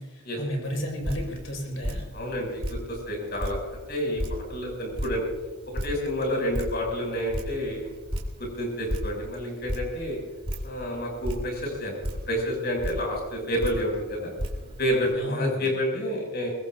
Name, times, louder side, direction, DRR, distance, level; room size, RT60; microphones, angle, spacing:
voice 1, 0.0-2.0 15.1-15.7, equal, 65° left, 1 dB, 5.0 m, -32 dB
Drip, 0.6-15.1, equal, 25° right, 2.7 m, -36 dB
voice 2, 2.1-5.2 5.8-7.9 8.6-10.2 10.6-12.0 12.3-14.3 14.8-16.5, equal, 45° left, 0 dB, 6.7 m, -29 dB
23.0 x 21.5 x 2.7 m, 1.3 s
head